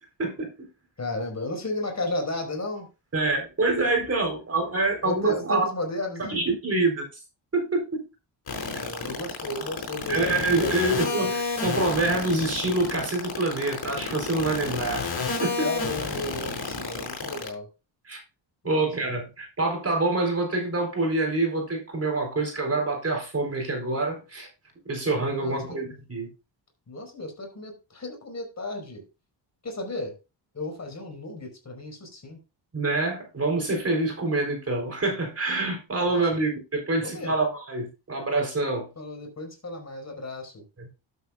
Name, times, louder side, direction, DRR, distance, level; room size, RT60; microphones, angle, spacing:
voice 1, 1.0-2.9 3.8-3.9 5.0-6.4 8.6-10.7 11.0-11.4 15.6-17.7 18.6-18.9 25.4-25.8 26.9-29.0 29.6-30.1 30.5-32.4 36.1-36.2 37.0-37.3 39.0-40.6, left 1 dB, 35° left, 3 dB, 4.8 m, -34 dB
voice 2, 3.1-5.6 6.2-7.0 7.5-8.1 10.1-15.1 15.4-15.7 18.1-18.2 18.6-24.5 24.9-26.3 32.7-38.9 40.8-40.9, right 2 dB, 30° right, 3 dB, 4.0 m, -26 dB
sound 1, 8.5-17.5, left 4 dB, 55° left, 5.9 m, -29 dB
12.5 x 8.2 x 2.4 m, 0.28 s
cardioid pair, 100°, 46 cm